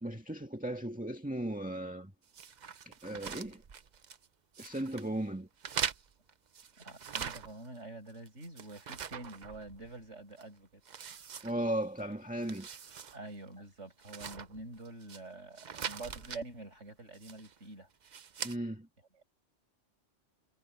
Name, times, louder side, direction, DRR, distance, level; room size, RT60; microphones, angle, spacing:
voice 1, 0.0-2.1 2.9-3.6 4.6-5.5 11.4-12.7 18.4-18.9, right 1 dB, 5° right, 1.7 m, -36 dB
sound 1, 2.3-4.3 4.5-5.1 5.6-7.8 8.1-10.0 10.4-10.5 10.9-12.0 12.3-13.2 13.5-13.6 14.0-15.2 15.6-16.4 17.1-17.6 18.0-18.6, right 7 dB, 45° right, 0.8 m, -42 dB
voice 2, 6.8-10.8 13.1-17.9 19.1-19.2, right 2 dB, 80° right, 6.8 m, -47 dB
omnidirectional pair, 1.2 m